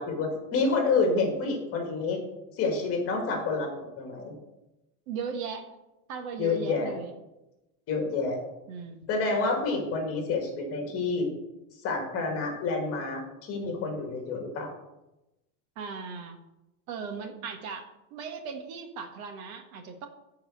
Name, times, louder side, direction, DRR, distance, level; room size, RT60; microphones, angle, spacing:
voice 1, 0.0-2.2 2.6-3.7 4.0-4.3 6.4-6.9 7.9-8.4 9.1-11.3 11.8-14.8, left 3 dB, 30° left, 3 dB, 2.0 m, -28 dB
voice 2, 5.1-5.7 6.1-7.1 8.7-9.1 15.8-16.4 16.9-20.1, right 5 dB, 65° right, 6 dB, 1.6 m, -37 dB
10.5 x 4.8 x 7.6 m, 0.96 s
cardioid pair, 175°, 45 cm